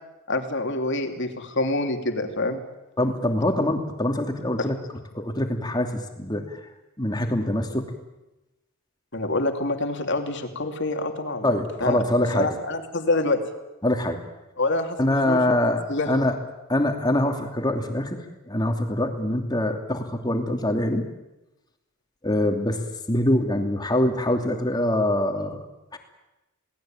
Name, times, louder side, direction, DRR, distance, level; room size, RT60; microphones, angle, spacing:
voice 1, 0.3-2.6 4.6-4.7 9.1-12.0 12.3-13.4 14.6-15.6 15.9-16.1, left 2 dB, 55° left, 5 dB, 2.9 m, -26 dB
voice 2, 3.0-4.8 5.1-6.6 7.0-7.9 11.4-12.5 13.8-14.2 15.0-16.3 16.7-21.0 22.2-22.8 23.1-25.6 25.9-26.0, left 1 dB, 20° left, 4 dB, 2.8 m, -24 dB
28.0 x 19.0 x 9.1 m, 0.99 s
head